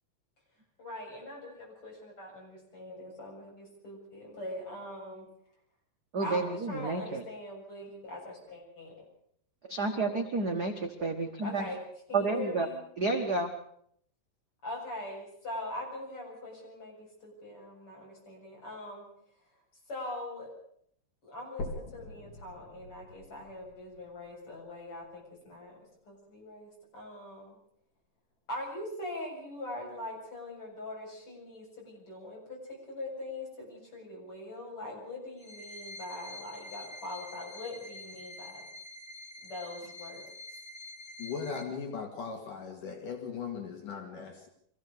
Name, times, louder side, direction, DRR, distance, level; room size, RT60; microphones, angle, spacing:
voice 1, 0.8-5.3 6.2-9.0 9.9-10.1 11.4-11.8 12.1-12.8 14.6-19.1 19.9-20.5 21.2-25.8 26.1-27.6 28.5-38.7 39.4-40.2, left 1 dB, 40° left, -2 dB, 8.0 m, -42 dB
voice 2, 6.1-7.2 9.7-11.7 12.1-12.7 13.0-13.5, right 3 dB, 50° right, 3 dB, 1.2 m, -30 dB
sound 1, 21.6-25.6 26.2-26.3 26.8-26.9 27.3-27.4 28.2-28.3, left 1 dB, 55° left, 4.9 m, -45 dB
sound 2, 35.4-41.6, left 2 dB, 15° left, 5.6 m, -47 dB
voice 3, 41.2-44.5, left 6 dB, 70° left, 3 dB, 3.8 m, -38 dB
24.0 x 16.0 x 6.7 m, 0.67 s
omnidirectional pair, 3.9 m